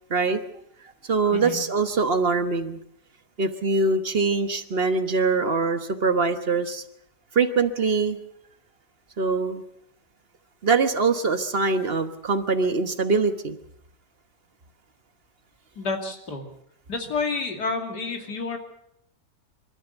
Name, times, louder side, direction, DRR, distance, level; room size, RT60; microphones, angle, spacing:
voice 1, 0.1-0.4 1.0-2.8 3.4-6.8 7.3-8.2 9.2-9.6 10.6-13.6, right 4 dB, 40° right, 9 dB, 1.3 m, -23 dB
voice 2, 15.8-16.5 16.9-18.6, left 4 dB, 65° left, 4 dB, 3.2 m, -29 dB
25.0 x 13.5 x 8.1 m, 0.74 s
omnidirectional pair, 1.9 m